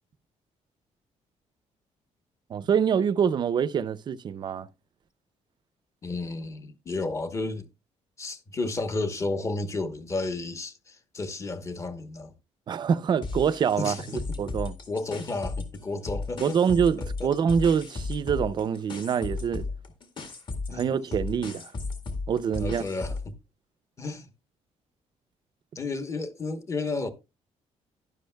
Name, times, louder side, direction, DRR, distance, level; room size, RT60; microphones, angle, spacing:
voice 1, 2.5-4.7 12.7-14.0 14.4-14.7 16.4-19.6 20.7-21.7 22.3-22.8, right 7 dB, 35° right, 0.5 m, -25 dB
voice 2, 6.0-7.7 8.2-12.3 13.8-14.4 14.9-16.6 17.0-17.3 20.7-20.8 22.6-23.3 24.0-24.3 25.7-27.1, left 3 dB, 25° left, 1.0 m, -32 dB
sound 1, 13.2-15.8 16.1-23.3, left 3 dB, 40° left, 1.9 m, -35 dB
11.5 x 11.0 x 2.2 m
cardioid pair, 170°, 12 cm